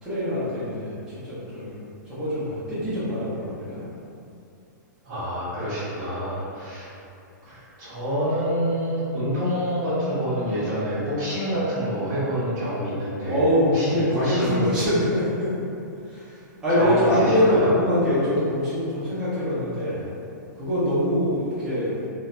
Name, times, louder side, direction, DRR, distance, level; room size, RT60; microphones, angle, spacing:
voice 1, 0.0-1.7 2.0-3.9 6.2-6.4 13.3-15.5 16.1-20.0 20.5-21.9, left 1 dB, 5° right, -13 dB, 0.7 m, -24 dB
voice 2, 5.0-6.9 7.4-13.4 13.7-14.7 16.7-17.7, equal, 40° right, -15 dB, 1.3 m, -27 dB
3.6 x 2.4 x 2.7 m, 2.7 s
hypercardioid pair, 175°, 10 cm